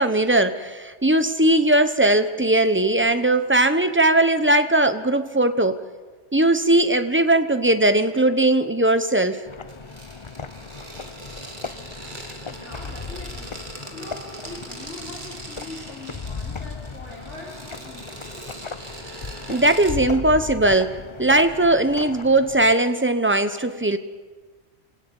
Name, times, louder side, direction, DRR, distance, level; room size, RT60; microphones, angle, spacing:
voice 1, 0.0-5.8 6.3-9.4 19.5-24.0, right 1 dB, 10° right, 9 dB, 0.9 m, -19 dB
sound 1, 9.5-22.7, left 5 dB, 30° left, 0.6 m, -37 dB
sound 2, 9.7-19.9, right 2 dB, 40° right, 2.5 m, -41 dB
voice 2, 12.5-13.5 13.9-18.3, left 2 dB, 65° left, -3 dB, 4.9 m, -41 dB
26.0 x 17.5 x 7.1 m, 1.4 s
omnidirectional pair, 1.3 m